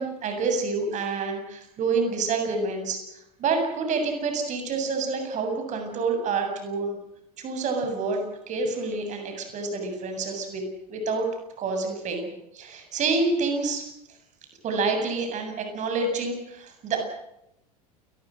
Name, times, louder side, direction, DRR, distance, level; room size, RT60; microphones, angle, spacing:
voice 1, 0.0-3.0 3.4-7.0 7.4-11.3 11.6-13.9 14.6-17.0, right 4 dB, 40° right, 5 dB, 7.9 m, -28 dB
29.0 x 21.0 x 6.6 m, 0.83 s
figure-of-eight pair, 75°, 19 cm